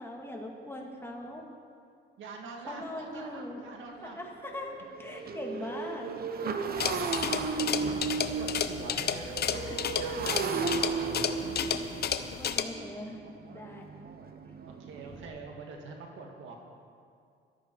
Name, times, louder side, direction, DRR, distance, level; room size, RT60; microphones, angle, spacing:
voice 1, 0.0-1.4 2.7-3.6 4.0-6.1 12.0-13.2 13.5-13.9 15.1-15.2, left 1 dB, 10° left, 0 dB, 2.1 m, -41 dB
voice 2, 2.2-4.2 5.6-6.0 6.4-6.8 7.8-11.3 14.7-16.6, right 4 dB, 80° right, 2 dB, 1.7 m, -45 dB
Motorcycle, 2.7-2.8 3.2-3.4 3.7-15.3, right 5 dB, 50° right, 0.9 m, -35 dB
sound 1, 6.8-12.6, left 8 dB, 55° left, 0.7 m, -32 dB
14.0 x 12.0 x 4.6 m, 2.3 s
cardioid pair, 90°, 20 cm